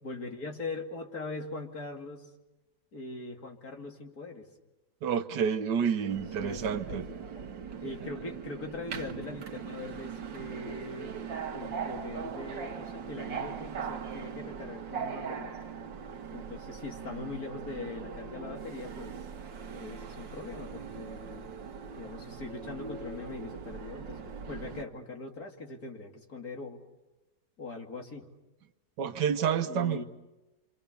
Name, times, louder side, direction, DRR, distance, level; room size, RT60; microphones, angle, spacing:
voice 1, 0.0-2.3 2.9-4.5 5.8-7.5 7.8-11.1 11.5-15.6 16.3-19.2 19.7-21.5 22.0-24.2 24.5-26.8 27.6-28.3 29.6-30.0, left 3 dB, 55° left, 2 dB, 3.1 m, -41 dB
voice 2, 5.0-7.0 29.0-30.0, right 7 dB, 70° right, 8 dB, 1.7 m, -29 dB
Subway metro underground, 6.1-24.8, right 6 dB, 90° right, 2.1 m, -40 dB
28.0 x 26.5 x 6.9 m, 1.0 s
omnidirectional pair, 1.9 m